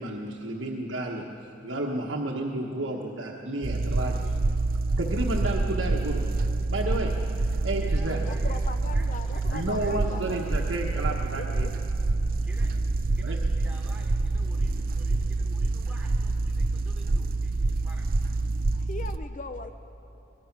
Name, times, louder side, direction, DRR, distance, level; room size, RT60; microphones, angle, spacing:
voice 1, 0.0-4.3 5.0-6.2 6.7-7.1 7.6-8.2 9.5-11.7 13.2-13.4, right 1 dB, 75° right, -1 dB, 1.4 m, -31 dB
sound 1, 3.6-19.2, right 3 dB, 50° right, 0.5 m, -27 dB
voice 2, 3.9-4.4 7.8-8.6 8.9-10.0 12.4-12.7 13.1-18.1, right 1 dB, 5° right, -3 dB, 3.2 m, -50 dB
voice 3, 8.3-10.6 11.1-11.7 18.7-19.7, left 3 dB, 40° left, 9 dB, 0.6 m, -40 dB
25.0 x 19.5 x 6.1 m, 3.0 s
head